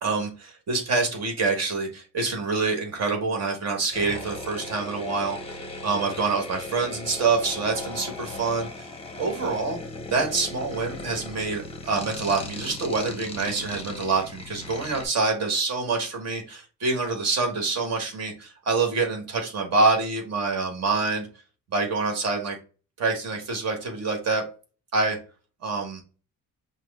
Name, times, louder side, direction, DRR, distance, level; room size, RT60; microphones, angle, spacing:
voice 1, 0.0-8.9 9.2-9.8 10.1-21.3 21.7-22.6 23.0-24.4 24.9-25.2 25.6-26.0, right 4 dB, 50° right, 3 dB, 1.3 m, -26 dB
sound 1, 3.9-15.1, left 2 dB, 15° left, 0.7 m, -38 dB
6.0 x 2.0 x 3.5 m, 0.35 s
cardioid pair, 165°, 33 cm